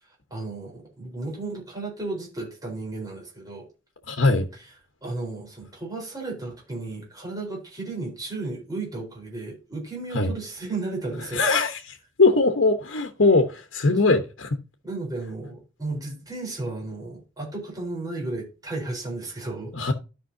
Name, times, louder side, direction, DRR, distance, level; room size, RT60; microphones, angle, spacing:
voice 1, 0.3-3.7 5.0-11.4 14.8-19.7, right 2 dB, 20° right, 4.1 m, -34 dB
voice 2, 4.1-4.5 10.1-10.3 11.3-14.6 19.7-19.9, left 3 dB, 85° left, 1.1 m, -21 dB
13.0 x 5.5 x 2.7 m
head